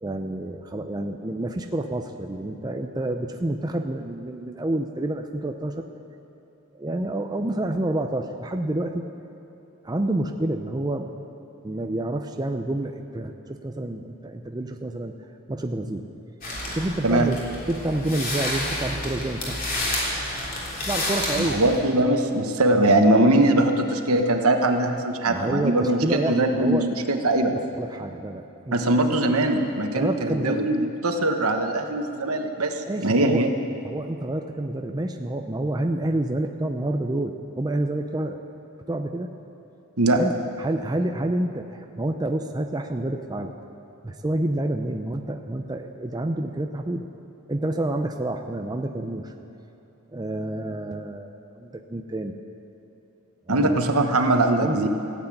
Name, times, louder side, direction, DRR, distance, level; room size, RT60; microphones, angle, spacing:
voice 1, 0.0-5.8 6.7-9.0 9.8-11.1 11.6-15.1 15.5-16.0 16.7-17.4 17.7-19.9 20.8-21.6 25.3-26.9 27.5-29.1 29.9-30.7 32.8-33.5 33.8-38.4 38.9-39.3 40.1-43.5 44.0-47.1 47.5-49.3 50.1-52.3 53.5-53.8 54.6-54.9, right 1 dB, 20° right, 5 dB, 0.5 m, -28 dB
sound 1, 16.4-21.8, left 1 dB, 40° left, 3.4 m, -30 dB
voice 2, 21.4-27.5 28.7-33.5 40.0-40.2 53.5-54.9, right 1 dB, 75° right, 5 dB, 1.2 m, -21 dB
15.5 x 8.3 x 8.8 m, 2.9 s
head